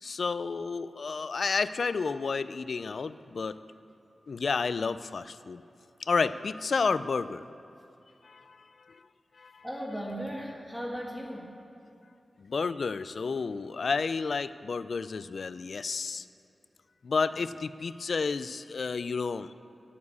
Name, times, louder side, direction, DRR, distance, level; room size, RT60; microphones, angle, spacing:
voice 1, 0.0-3.6 4.3-5.6 6.0-7.5 8.2-9.0 9.4-9.6 12.4-16.3 17.0-19.5, left 4 dB, 70° left, 14 dB, 0.3 m, -31 dB
voice 2, 9.6-11.5 17.3-17.4, equal, 5° right, -2 dB, 1.8 m, -37 dB
8.3 x 7.2 x 8.3 m, 2.8 s
wide cardioid pair, 70°, 0 cm